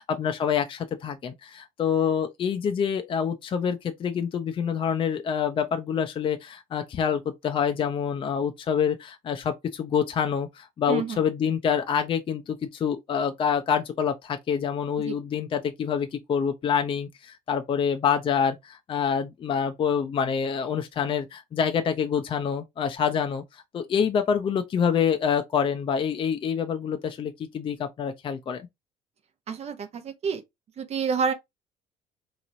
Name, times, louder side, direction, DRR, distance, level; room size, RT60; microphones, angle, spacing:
voice 1, 0.0-28.6, left 7 dB, 35° left, 0.5 m, -26 dB
voice 2, 10.9-11.2 15.0-15.1 29.5-30.4 30.8-31.3, right 6 dB, 45° right, 0.7 m, -28 dB
3.9 x 3.0 x 2.5 m
cardioid pair, 105°, 15 cm